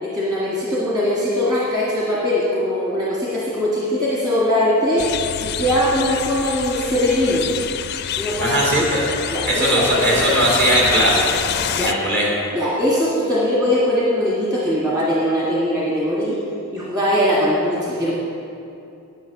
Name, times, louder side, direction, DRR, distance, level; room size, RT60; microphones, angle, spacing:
voice 1, 0.0-5.1 5.4-7.5 8.2-8.9 9.3-10.2 11.8-11.9 12.5-16.4 16.7-18.2, left 1 dB, 20° right, -7 dB, 1.7 m, -21 dB
sound 1, 5.0-11.9, left 9 dB, 45° left, 0.4 m, -26 dB
voice 2, 8.4-9.0 9.4-12.3, right 1 dB, 50° right, -5 dB, 2.9 m, -19 dB
9.8 x 9.0 x 5.9 m, 2.6 s
head